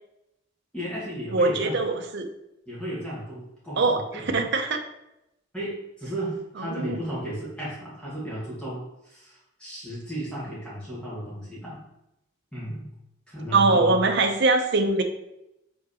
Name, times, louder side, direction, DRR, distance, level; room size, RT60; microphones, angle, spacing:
voice 1, 0.7-1.8 2.7-4.5 5.5-11.8 12.5-12.9 13.3-14.1, right 1 dB, 5° left, -8 dB, 2.1 m, -34 dB
voice 2, 1.3-2.3 3.8-4.8 6.6-7.0 13.5-15.0, right 3 dB, 60° right, 5 dB, 0.7 m, -22 dB
5.2 x 3.9 x 4.9 m, 0.88 s
head